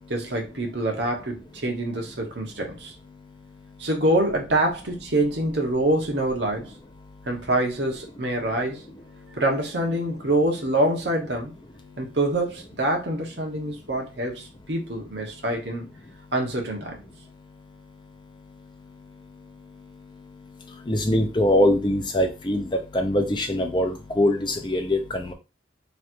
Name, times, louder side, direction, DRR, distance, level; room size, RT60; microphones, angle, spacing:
voice 1, 0.1-2.9 3.8-6.7 7.3-8.8 9.3-11.5 12.0-15.9 16.3-17.0, right 1 dB, 65° right, 1.1 m, -25 dB
voice 2, 20.9-22.7 22.9-25.3, left 1 dB, 25° left, 0.6 m, -22 dB
3.2 x 2.5 x 4.4 m
head